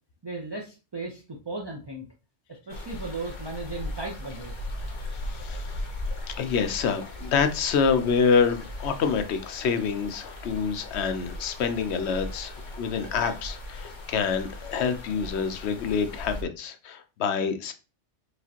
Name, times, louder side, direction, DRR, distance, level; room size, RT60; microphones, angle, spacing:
voice 1, 0.2-2.1 2.7-4.8, right 2 dB, 25° right, -1 dB, 0.6 m, -36 dB
sound 1, 2.7-16.4, left 1 dB, 85° left, 1.3 m, -38 dB
voice 2, 5.2-5.8 6.3-17.7, left 6 dB, 70° left, 8 dB, 0.9 m, -27 dB
4.9 x 3.1 x 2.8 m, 0.32 s
omnidirectional pair, 1.2 m